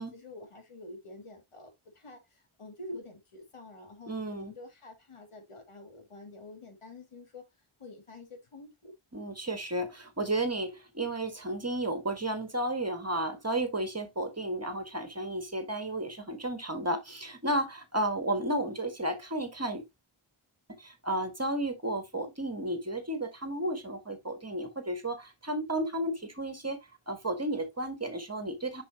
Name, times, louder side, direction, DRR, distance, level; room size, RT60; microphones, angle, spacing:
voice 1, 0.1-7.4 7.8-8.9, left 2 dB, 80° left, 2.5 m, -47 dB
voice 2, 4.1-4.5 9.1-19.8 20.8-26.8 27.1-28.8, right 1 dB, 30° right, 1.6 m, -33 dB
6.8 x 5.9 x 2.8 m
wide cardioid pair, 80°, 50 cm